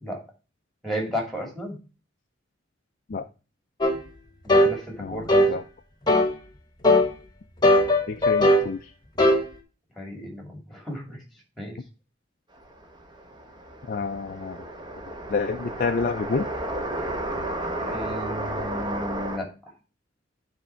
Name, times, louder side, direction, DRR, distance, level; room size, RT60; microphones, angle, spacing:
voice 1, 0.8-1.8 4.4-5.4 10.0-11.2 11.6-11.8 17.8-19.5, equal, ahead, 2 dB, 2.4 m, -33 dB
sound 1, 3.8-4.0 4.5-4.7 5.3-5.5 6.1-6.3 6.8-7.1 7.6-8.7 9.2-9.4, left 1 dB, 25° left, 1.2 m, -18 dB
voice 2, 5.0-5.6 8.1-8.9 13.9-14.7 15.3-16.5, left 4 dB, 50° left, 6 dB, 0.4 m, -28 dB
sound 2, 12.6-19.4, right 1 dB, 25° right, 1.1 m, -33 dB
9.3 x 3.5 x 4.3 m, 0.33 s
head